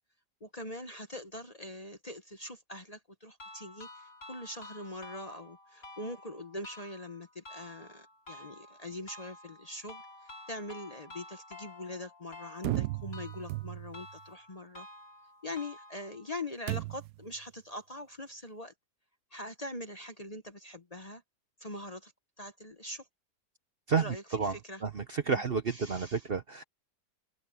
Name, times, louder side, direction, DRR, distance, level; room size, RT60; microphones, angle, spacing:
voice 1, 0.4-14.9 15.4-18.7 19.3-21.2 21.6-22.1 22.4-23.1 24.0-24.8 25.3-25.4 25.7-26.2, left 1 dB, 30° left, 0.9 m, -43 dB
sound 1, 3.4-16.4, left 2 dB, 55° left, 5.1 m, -51 dB
sound 2, 12.6-14.1 16.7-17.3, right 17 dB, 80° right, 1.1 m, -35 dB
voice 2, 23.9-24.5 24.8-26.6, right 5 dB, 45° right, 0.9 m, -30 dB
omnidirectional pair, 1.7 m